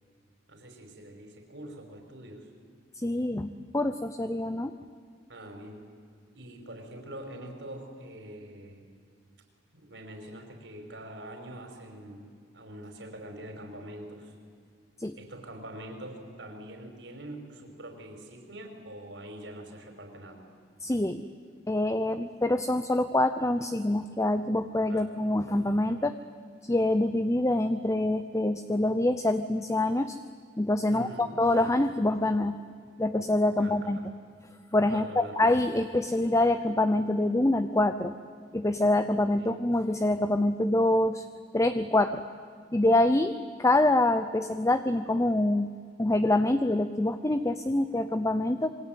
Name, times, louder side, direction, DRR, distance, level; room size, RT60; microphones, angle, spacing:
voice 1, 0.5-2.5 5.3-5.8 6.3-8.8 9.7-14.3 15.2-20.4 24.9-25.1 30.9-31.3 33.6-34.1 34.9-35.3 39.4-39.6, right 1 dB, 70° right, 4 dB, 5.1 m, -44 dB
voice 2, 3.0-4.8 15.0-15.2 20.8-21.3 21.7-26.1 26.6-30.2 30.6-32.6 33.0-34.0 34.7-38.1 38.5-41.2 41.5-42.2 42.7-45.7 46.0-48.7, left 1 dB, 15° left, 10 dB, 0.7 m, -25 dB
26.5 x 23.5 x 9.4 m, 2.1 s
head